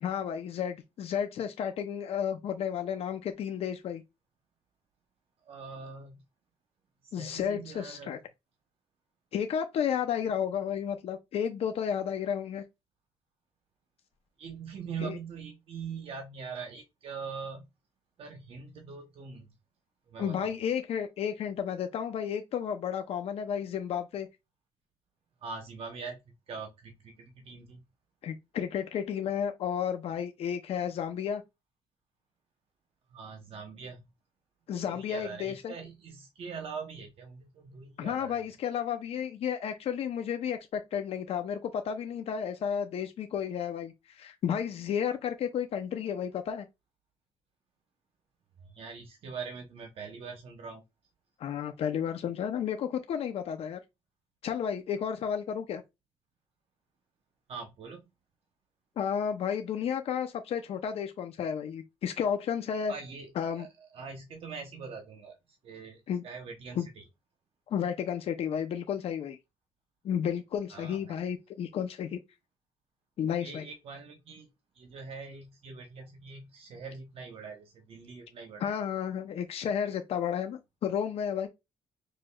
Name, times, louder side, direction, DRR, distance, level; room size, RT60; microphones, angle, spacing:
voice 1, 0.0-4.0 7.1-8.2 9.3-12.6 15.0-15.2 20.2-24.3 28.2-31.4 34.7-35.7 38.0-46.7 51.4-53.8 54.4-55.8 59.0-62.9 63.4-63.7 66.1-66.2 66.8-66.9 67.7-69.4 70.0-72.2 73.2-73.6 78.6-81.5, left 8 dB, 65° left, 0.6 m, -32 dB
voice 2, 5.5-6.2 7.0-8.2 14.4-17.6 18.2-19.5 20.1-20.5 25.4-26.2 26.5-27.8 33.1-34.0 34.7-38.4 48.6-50.8 57.5-58.1 62.9-65.4 65.6-67.0 70.7-71.2 73.4-74.5 74.7-78.8, right 5 dB, 60° right, 0.9 m, -43 dB
6.1 x 3.1 x 2.2 m
cardioid pair, 135°, 11 cm